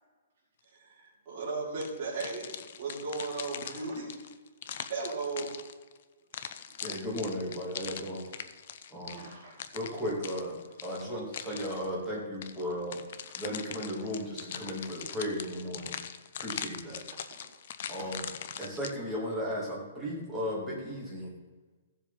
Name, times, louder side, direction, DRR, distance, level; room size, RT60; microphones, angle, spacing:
voice 1, 0.7-4.1 4.9-5.5, right 3 dB, 25° right, -8 dB, 3.5 m, -36 dB
sound 1, 1.8-6.0 6.3-11.9 12.4-18.9, left 8 dB, 45° left, 0.6 m, -42 dB
voice 2, 6.8-8.3 8.9-9.2 9.7-13.0 13.4-16.0 16.4-17.0 17.9-18.2 18.6-21.3, equal, ahead, -7 dB, 2.4 m, -35 dB
voice 3, 9.1-9.8 10.6-10.7 13.2-13.7 17.1-17.6 18.0-18.1, right 3 dB, 45° right, -8 dB, 4.1 m, -52 dB
15.0 x 7.4 x 4.1 m, 1.3 s
hypercardioid pair, 175°, 0 cm